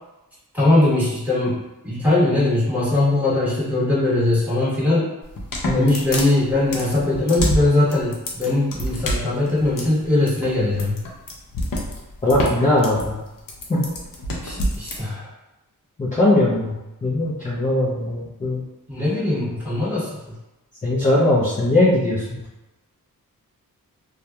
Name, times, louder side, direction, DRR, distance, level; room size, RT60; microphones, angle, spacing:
voice 1, 0.5-5.1 5.7-11.0 14.4-15.3 18.9-20.3, left 2 dB, 5° right, -10 dB, 1.4 m, -20 dB
sound 1, 5.2-15.0, left 1 dB, 65° left, 0.6 m, -27 dB
voice 2, 12.2-13.2 13.7-13.9 16.0-16.7 17.0-18.6 20.8-22.4, left 1 dB, 20° left, -7 dB, 0.5 m, -19 dB
2.8 x 2.3 x 2.2 m, 0.99 s
wide cardioid pair, 95°, 35 cm